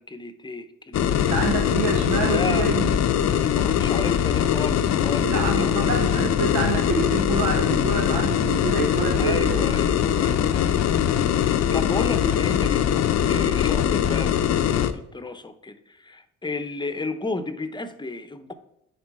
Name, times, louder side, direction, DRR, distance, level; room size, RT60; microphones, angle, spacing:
voice 1, 0.0-1.3 2.2-2.9 3.2-5.8 7.7-8.4 9.2-11.1 11.4-18.5, left 3 dB, 15° left, 10 dB, 0.8 m, -33 dB
sound 1, 0.9-14.9, left 9 dB, 60° left, 0.6 m, -22 dB
voice 2, 1.2-3.0 5.2-9.7, right 4 dB, 85° right, 4 dB, 0.9 m, -27 dB
9.8 x 4.3 x 4.8 m, 0.82 s
cardioid pair, 90°, 30 cm